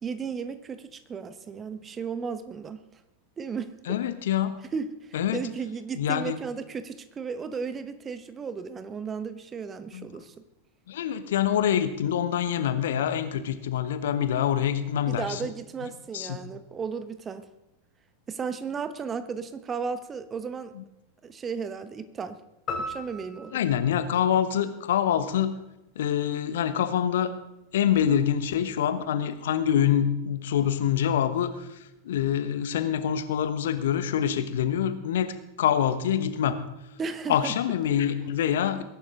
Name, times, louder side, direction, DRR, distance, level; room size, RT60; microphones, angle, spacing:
voice 1, 0.0-2.8 3.4-4.0 4.7-10.4 15.1-17.5 18.3-20.7 21.2-22.4 22.9-23.6 37.0-37.5, right 5 dB, 20° right, 12 dB, 1.1 m, -34 dB
voice 2, 3.9-4.5 5.1-5.5 6.0-6.4 9.9-10.1 10.9-15.5 16.1-16.4 20.7-20.8 23.5-25.6 25.9-27.3 27.7-31.8 32.0-36.6 37.3-38.8, left 9 dB, 60° left, 11 dB, 1.2 m, -25 dB
sound 1, 22.7-25.1, left 2 dB, 30° left, 3.5 m, -38 dB
21.0 x 11.5 x 3.8 m, 0.93 s
figure-of-eight pair, 90°, 0 cm